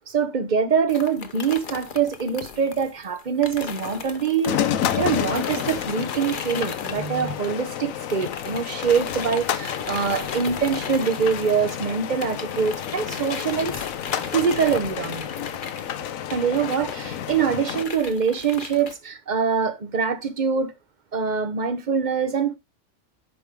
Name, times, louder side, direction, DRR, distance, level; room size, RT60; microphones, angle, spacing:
voice 1, 0.1-4.6 5.0-13.8 14.2-15.3 16.3-20.7 21.1-22.6, right 6 dB, 40° right, 0.9 m, -24 dB
sound 1, 0.9-7.8 8.1-18.9, left 6 dB, 45° left, 0.9 m, -37 dB
sound 2, 4.5-17.9, left 10 dB, 85° left, 1.1 m, -30 dB
10.5 x 4.8 x 3.6 m
omnidirectional pair, 1.4 m